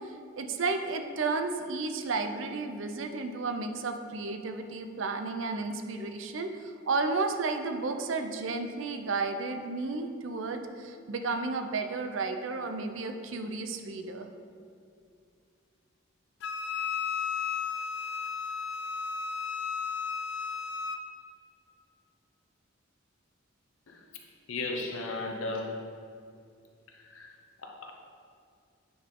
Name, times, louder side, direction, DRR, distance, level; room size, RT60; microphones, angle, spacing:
voice 1, 0.0-14.3, right 3 dB, 70° right, 7 dB, 0.5 m, -33 dB
Wind instrument woodwind instrument, 16.4-21.0, left 6 dB, 60° left, 0.4 m, -34 dB
voice 2, 24.5-25.9 26.9-27.9, left 2 dB, 75° left, 2 dB, 0.9 m, -36 dB
9.2 x 4.0 x 3.7 m, 2.4 s
head